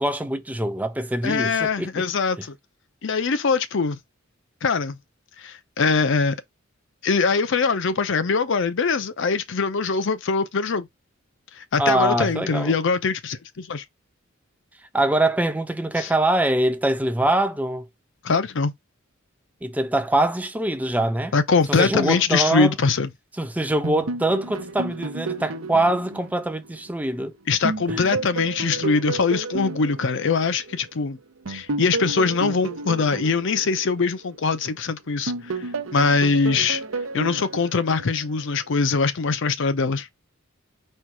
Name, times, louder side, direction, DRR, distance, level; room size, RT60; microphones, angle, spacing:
voice 1, 0.0-2.0 11.8-12.8 14.9-17.9 19.6-21.3 21.7-22.7 23.4-27.3 27.9-28.0, right 1 dB, 10° right, 0.6 m, -23 dB
voice 2, 1.2-2.6 3.0-4.0 4.6-5.0 5.4-6.4 7.0-10.9 11.5-13.8 16.0-16.1 18.2-18.7 21.3-23.1 27.5-31.2 31.5-36.8 37.1-40.1, left 4 dB, 65° left, 0.6 m, -22 dB
sound 1, 23.8-27.2 27.6-30.9 31.5-34.8 35.3-38.5, right 3 dB, 80° right, 0.8 m, -31 dB
4.5 x 2.4 x 4.5 m
head